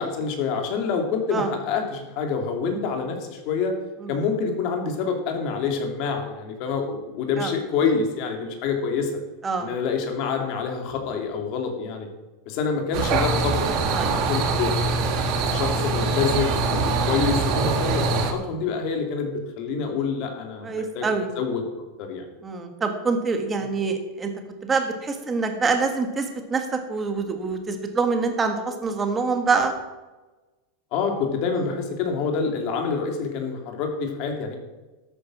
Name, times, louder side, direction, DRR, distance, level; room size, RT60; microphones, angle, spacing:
voice 1, 0.0-3.7 4.1-9.1 9.6-12.1 12.5-14.7 15.3-21.1 21.4-21.6 22.0-22.2 30.9-34.6, left 5 dB, 40° left, 4 dB, 2.6 m, -27 dB
sound 1, 12.9-18.3, right 4 dB, 40° right, 1.7 m, -23 dB
voice 2, 20.6-21.3 22.4-24.3 24.6-29.7 31.5-31.6, right 4 dB, 15° right, 5 dB, 1.5 m, -25 dB
13.0 x 8.9 x 6.1 m, 1.1 s
supercardioid pair, 170°, 0 cm